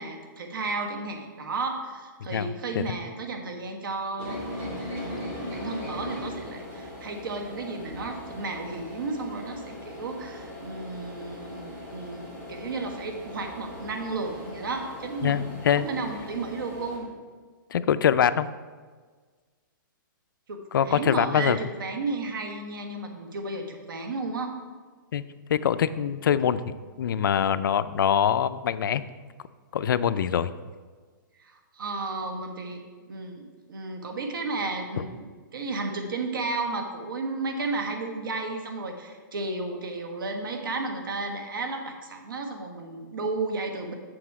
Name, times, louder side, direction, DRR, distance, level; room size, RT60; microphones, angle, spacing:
voice 1, 0.0-17.1 20.5-24.6 31.4-32.8 33.1-43.9, right 3 dB, 80° right, 4 dB, 1.4 m, -33 dB
voice 2, 2.3-3.0 15.2-15.9 17.7-18.5 20.7-21.6 25.1-25.2 25.5-29.0 29.7-30.5, left 9 dB, 75° left, 14 dB, 0.4 m, -24 dB
sound 1, 4.2-17.0, left 1 dB, 35° right, 2.8 m, -39 dB
7.8 x 6.2 x 4.8 m, 1.5 s
hypercardioid pair, 170°, 11 cm